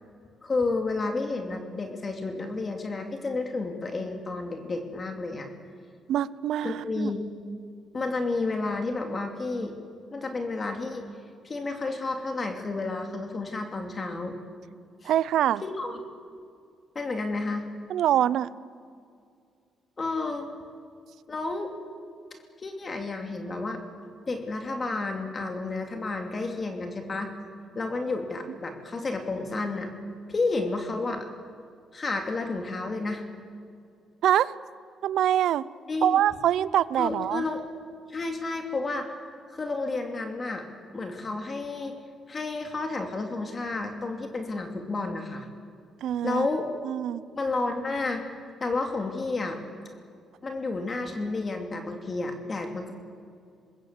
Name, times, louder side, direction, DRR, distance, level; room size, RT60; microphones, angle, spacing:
voice 1, 0.4-5.5 6.6-7.2 7.9-9.7 10.1-11.1 11.4-14.4 15.0-15.1 15.6-15.9 16.9-17.7 20.0-20.5 21.3-21.7 22.6-23.8 24.3-27.3 27.7-29.9 30.3-31.3 31.9-33.2 35.9-36.2 37.0-37.7 38.1-39.2 39.5-40.6 40.9-41.9 42.3-45.5 46.2-46.7 47.3-48.3 48.6-49.6 50.4-52.9, left 3 dB, 35° left, 4 dB, 2.7 m, -31 dB
voice 2, 6.1-7.1 15.0-15.6 17.9-18.5 34.2-34.5 35.0-35.7 36.0-37.4 46.0-46.5 46.8-47.2, right 11 dB, 75° right, 19 dB, 0.6 m, -24 dB
25.5 x 21.0 x 8.2 m, 2.3 s
cardioid pair, 90°, 0 cm